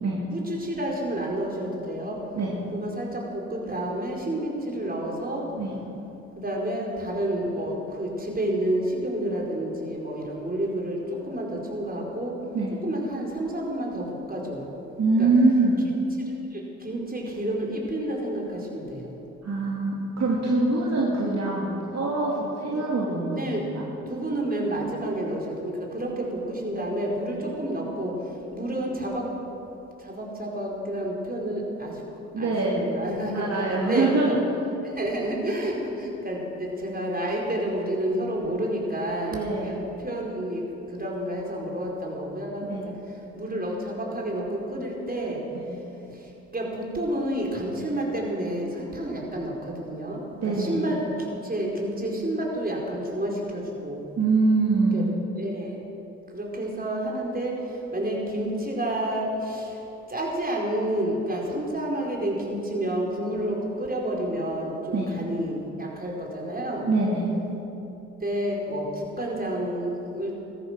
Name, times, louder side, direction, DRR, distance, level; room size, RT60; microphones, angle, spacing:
voice 1, 0.3-2.2 2.7-5.5 6.4-12.4 12.8-14.7 15.2-15.3 16.8-19.1 22.7-22.9 23.3-23.7 24.1-28.2 28.5-29.3 30.0-31.9 32.4-34.2 34.8-40.6 40.9-42.7 43.3-45.4 46.5-54.0 54.9-55.8 56.3-57.6 57.9-59.8 60.1-66.9 68.2-70.3, right 1 dB, 25° right, -2 dB, 4.8 m, -30 dB
voice 2, 15.0-15.8 19.4-23.8 32.3-32.9 33.3-34.3 39.3-39.8 42.6-42.9 45.5-45.7 50.4-50.8 54.2-55.0 64.9-65.1 66.8-67.3, right 3 dB, 50° right, -4 dB, 2.7 m, -24 dB
15.5 x 14.0 x 6.5 m, 3.0 s
hypercardioid pair, 45°, 33 cm